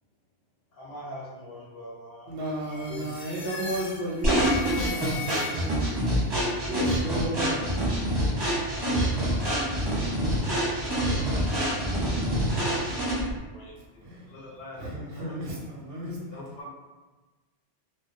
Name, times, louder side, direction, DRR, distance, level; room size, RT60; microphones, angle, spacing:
voice 1, 0.7-2.3 2.6-3.1, equal, 40° left, -11 dB, 0.6 m, -42 dB
voice 2, 2.3-6.0 6.3-7.7 14.0-14.3 14.7-16.2, right 1 dB, 65° right, -4 dB, 0.7 m, -34 dB
sound 1, 2.6-6.0, left 5 dB, 90° left, 1.0 m, -38 dB
sound 2, 4.2-13.4, equal, 25° right, 0.6 m, -26 dB
voice 3, 14.3-14.9 15.1-15.3 16.3-16.7, left 1 dB, 65° left, -3 dB, 0.8 m, -43 dB
2.2 x 2.2 x 2.5 m, 1.2 s
omnidirectional pair, 1.2 m